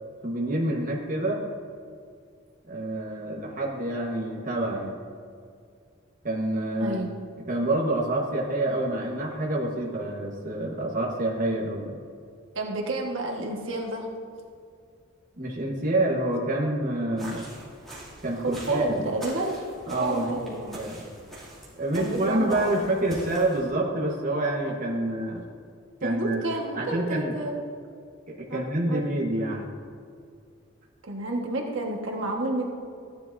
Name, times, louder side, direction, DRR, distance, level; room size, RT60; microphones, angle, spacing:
voice 1, 0.2-1.4 2.7-5.0 6.2-7.0 7.5-12.0 15.4-17.5 18.2-19.1 19.9-21.0 21.8-25.4 26.0-26.4 26.8-27.3 28.3-29.7, right 1 dB, 40° right, -3 dB, 1.2 m, -27 dB
voice 2, 6.8-7.1 12.5-14.1 18.4-19.6 19.9-20.8 21.9-22.7 26.0-27.6 28.5-28.6 28.9-29.0 31.0-32.7, right 2 dB, 65° right, 0 dB, 1.4 m, -30 dB
sound 1, 17.2-23.7, right 1 dB, ahead, 2.5 m, -44 dB
14.5 x 10.5 x 2.6 m, 2.3 s
head